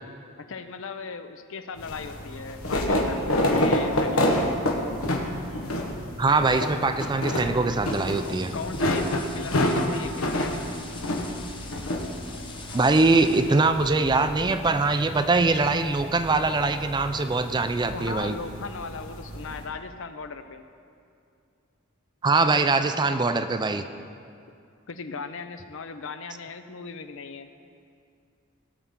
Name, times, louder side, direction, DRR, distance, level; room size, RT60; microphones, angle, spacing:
voice 1, 0.4-3.3 3.6-4.6 8.2-10.8 17.9-20.6 24.9-27.5, left 4 dB, 65° left, 9 dB, 0.6 m, -37 dB
sound 1, 1.8-19.6, left 1 dB, 90° left, 1.2 m, -29 dB
voice 2, 6.2-8.5 12.7-18.4 22.2-23.8, right 3 dB, 20° right, 9 dB, 0.4 m, -22 dB
sound 2, 7.8-13.7, left 4 dB, 25° left, 0.9 m, -45 dB
18.0 x 7.1 x 3.7 m, 2.4 s
head